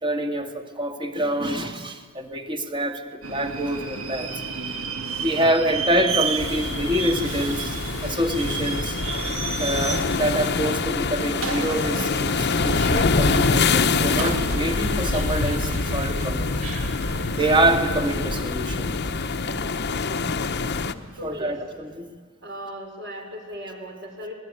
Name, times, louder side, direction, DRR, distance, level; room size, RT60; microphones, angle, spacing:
voice 1, 0.0-4.3 5.1-7.8 8.0-9.0 9.6-16.5 17.4-18.9 21.2-22.1, right 1 dB, 25° right, 5 dB, 2.0 m, -26 dB
Subway metro underground, 3.2-21.7, right 4 dB, 75° right, 2.2 m, -33 dB
sound 1, 6.4-20.9, left 4 dB, 50° left, 1.0 m, -25 dB
voice 2, 21.2-21.6 22.4-24.3, equal, 55° right, 3 dB, 5.4 m, -37 dB
26.0 x 19.0 x 9.8 m, 1.6 s
head